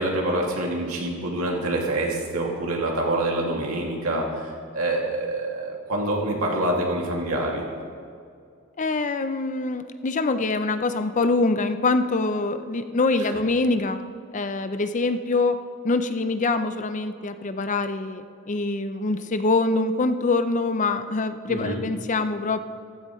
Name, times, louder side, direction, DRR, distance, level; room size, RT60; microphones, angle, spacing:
voice 1, 0.0-4.3 4.7-7.6 13.3-13.4 21.5-21.8, right 1 dB, 90° right, -1 dB, 2.4 m, -26 dB
voice 2, 8.8-14.0 14.3-15.6 15.8-22.6, left 3 dB, 35° left, 10 dB, 0.5 m, -24 dB
15.0 x 13.5 x 3.2 m, 2.3 s
head